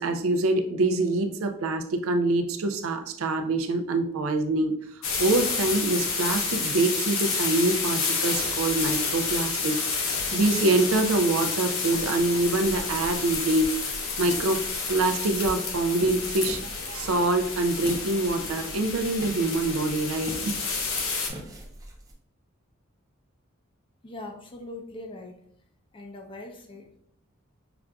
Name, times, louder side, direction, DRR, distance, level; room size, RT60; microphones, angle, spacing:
voice 1, 0.0-4.7 5.2-14.6 14.9-20.4, right 2 dB, 80° right, 7 dB, 0.4 m, -25 dB
sound 1, 5.0-21.3, left 4 dB, 70° left, 0.7 m, -30 dB
sound 2, 11.9-22.1, right 1 dB, 15° right, 0.6 m, -44 dB
voice 2, 24.0-25.4 25.9-27.0, left 2 dB, 25° left, 3 dB, 0.5 m, -41 dB
5.8 x 2.5 x 2.2 m, 0.68 s
head